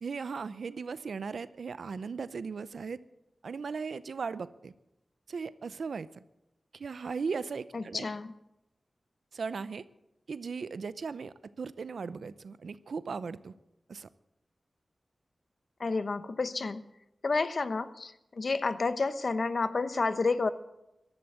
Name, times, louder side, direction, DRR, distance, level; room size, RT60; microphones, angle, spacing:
voice 1, 0.0-3.0 3.4-4.7 5.3-6.1 6.7-8.1 9.3-9.8 10.3-13.5 13.9-14.1, right 5 dB, 85° right, 16 dB, 0.6 m, -37 dB
voice 2, 7.7-8.3 15.8-16.8 17.2-20.5, left 3 dB, 60° left, 13 dB, 0.9 m, -30 dB
15.5 x 12.0 x 7.9 m, 0.89 s
wide cardioid pair, 70°, 0 cm